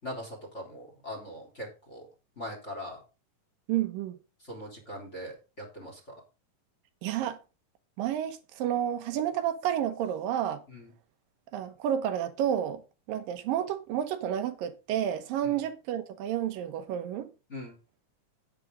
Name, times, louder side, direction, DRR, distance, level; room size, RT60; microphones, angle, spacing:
voice 1, 0.0-2.1 2.4-3.0 4.5-6.1 10.7-10.9 15.4-15.6 17.5-17.7, equal, 20° left, 3.5 m, -41 dB
voice 2, 3.7-4.2 7.0-7.4 8.0-10.6 11.5-12.8 13.1-17.3, right 10 dB, 85° right, 2.8 m, -30 dB
10.5 x 9.1 x 3.8 m
omnidirectional pair, 3.9 m